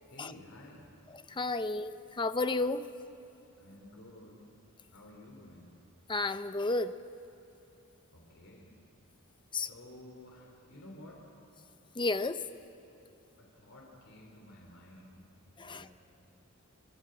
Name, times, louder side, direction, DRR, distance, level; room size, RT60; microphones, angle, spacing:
voice 1, 0.1-0.9 1.6-1.8 3.6-4.5 4.9-5.8 8.1-8.7 9.5-11.3 13.4-15.3 15.6-15.9, left 1 dB, 70° left, -2 dB, 3.6 m, -53 dB
voice 2, 1.3-2.9 6.1-6.9 9.5-9.7 12.0-12.4 15.6-15.9, left 2 dB, 20° left, 11 dB, 0.7 m, -32 dB
27.0 x 20.5 x 7.8 m, 2.8 s
head